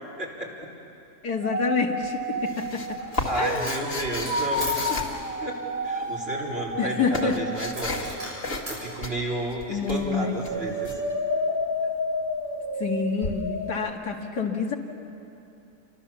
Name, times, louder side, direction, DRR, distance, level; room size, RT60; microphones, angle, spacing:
voice 1, 0.2-0.5 3.3-5.0 5.4-8.2 8.7-10.9, right 1 dB, 35° right, -3 dB, 4.3 m, -32 dB
voice 2, 1.2-2.8 3.4-3.7 6.8-7.4 9.7-10.7 12.8-14.7, left 5 dB, 80° left, 1 dB, 2.6 m, -28 dB
sound 1, 1.4-9.7 10.0-13.9, left 1 dB, 10° left, 1.4 m, -31 dB
sound 2, 2.0-5.8 6.6-8.1 8.4-8.7 9.0-11.0 13.2-13.3, left 2 dB, 55° left, 2.4 m, -34 dB
Coin (dropping), 3.0-3.3 3.5-5.1 7.7-8.8, right 1 dB, 70° right, 7.2 m, -37 dB
29.0 x 24.5 x 7.2 m, 2.9 s
omnidirectional pair, 1.7 m